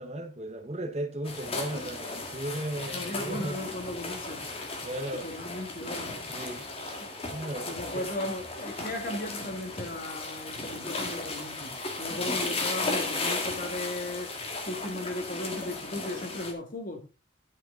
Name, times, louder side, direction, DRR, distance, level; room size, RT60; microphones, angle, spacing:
voice 1, 0.0-3.6 4.8-5.3 6.3-6.6 7.3-8.1 12.1-12.4, right 1 dB, 35° right, 1.1 m, -36 dB
sound 1, 1.3-16.5, left 3 dB, 30° left, 2.0 m, -35 dB
voice 2, 2.9-4.4 5.2-6.1 7.7-11.7 12.0-14.3 14.7-17.0, left 1 dB, 45° left, 2.1 m, -36 dB
12.0 x 6.6 x 3.8 m
head